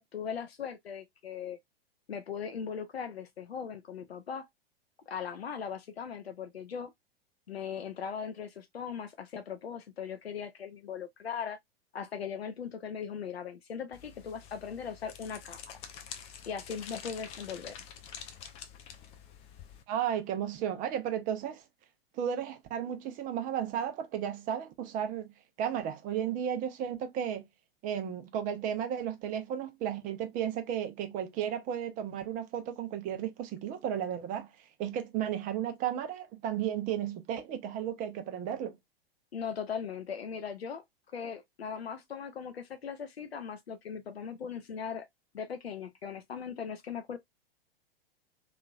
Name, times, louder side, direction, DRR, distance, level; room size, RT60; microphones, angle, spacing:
voice 1, 0.0-1.6 2.1-4.5 5.1-6.9 7.5-11.6 11.9-15.8 16.5-17.8 39.3-40.8 41.1-45.1 45.3-47.2, left 7 dB, 85° left, 0.5 m, -39 dB
sound 1, 13.9-19.8, left 8 dB, 20° left, 0.4 m, -47 dB
voice 2, 19.9-21.6 22.1-25.3 25.6-27.5 27.8-34.5 34.8-38.8, right 9 dB, 25° right, 0.6 m, -34 dB
3.0 x 2.4 x 2.3 m
figure-of-eight pair, 100°, 30 cm